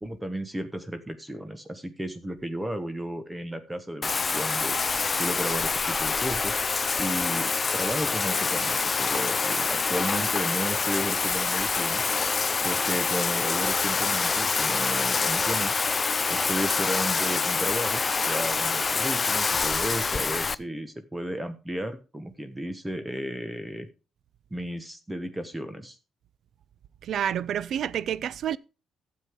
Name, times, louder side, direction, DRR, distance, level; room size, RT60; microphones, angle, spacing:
voice 1, 0.0-4.8 5.1-6.6 7.0-12.0 12.6-15.7 16.3-23.9 24.5-26.0, right 1 dB, 10° right, 1.2 m, -34 dB
Bathtub (filling or washing), 4.0-20.5, left 4 dB, 35° left, 0.4 m, -26 dB
Tools, 8.8-12.6 12.9-13.1 13.6-13.9 14.3-14.9, left 7 dB, 55° left, 1.1 m, -39 dB
voice 2, 27.0-28.6, right 9 dB, 65° right, 0.4 m, -29 dB
12.0 x 7.7 x 3.6 m
cardioid pair, 90°, 0 cm